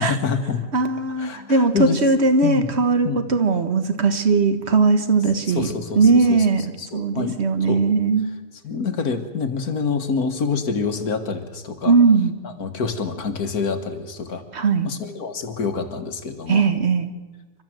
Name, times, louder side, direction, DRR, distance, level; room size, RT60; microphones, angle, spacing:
voice 1, 0.0-0.6 1.2-2.0 2.4-2.8 3.0-3.2 5.5-6.5 6.8-7.4 7.7-7.8 8.6-11.9 12.4-14.4 14.8-16.6, left 5 dB, 60° left, 8 dB, 1.9 m, -26 dB
voice 2, 0.7-5.7 6.0-8.4 11.9-12.3 14.5-14.9 16.5-17.1, right 4 dB, 40° right, 9 dB, 1.6 m, -19 dB
29.0 x 13.0 x 7.7 m, 1.3 s
omnidirectional pair, 1.8 m